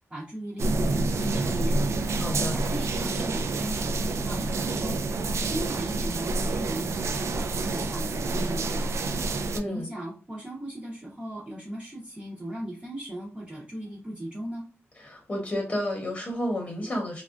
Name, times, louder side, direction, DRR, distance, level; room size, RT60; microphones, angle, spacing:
voice 1, 0.1-1.8 2.5-5.0 5.3-8.9 9.6-14.7, right 1 dB, 20° right, -5 dB, 0.7 m, -37 dB
sound 1, 0.6-9.6, right 3 dB, 70° right, 0.3 m, -28 dB
voice 2, 2.2-2.6 9.5-9.9 15.0-17.2, left 1 dB, 25° left, 0 dB, 1.0 m, -31 dB
3.5 x 2.3 x 2.4 m, 0.33 s
wide cardioid pair, 110°, 5 cm